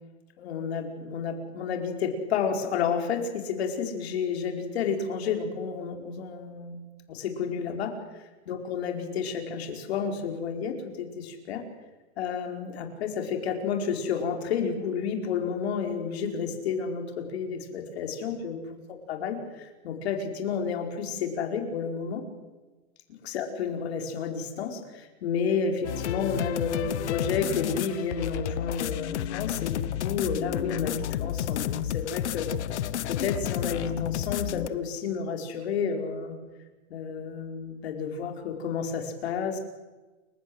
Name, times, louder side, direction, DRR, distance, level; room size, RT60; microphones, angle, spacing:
voice 1, 0.4-6.8 7.1-7.9 8.5-11.6 12.2-18.6 19.1-22.2 23.2-32.5 33.1-36.3 36.9-39.6, left 6 dB, 65° left, 4 dB, 4.9 m, -31 dB
sound 1, 25.8-34.7, left 11 dB, 80° left, 1.2 m, -31 dB
29.0 x 16.0 x 8.0 m, 1.2 s
supercardioid pair, 170°, 34 cm